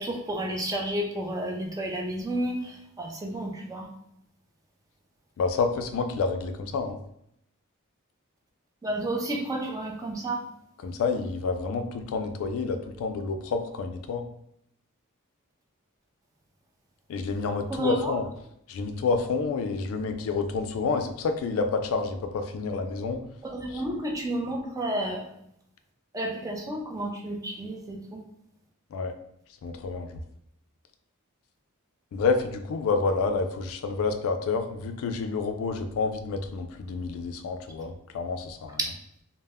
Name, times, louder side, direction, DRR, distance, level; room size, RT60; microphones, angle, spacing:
voice 1, 0.0-3.9 8.8-10.4 17.7-18.2 23.4-25.3 26.1-28.2 38.8-38.9, right 1 dB, 15° right, 1 dB, 0.3 m, -31 dB
voice 2, 5.4-7.0 10.8-14.2 17.1-18.2 18.7-23.2 23.7-23.8 28.9-29.1 29.6-30.2 32.1-38.8, left 4 dB, 65° left, 7 dB, 0.3 m, -29 dB
2.1 x 2.0 x 3.4 m, 0.75 s
head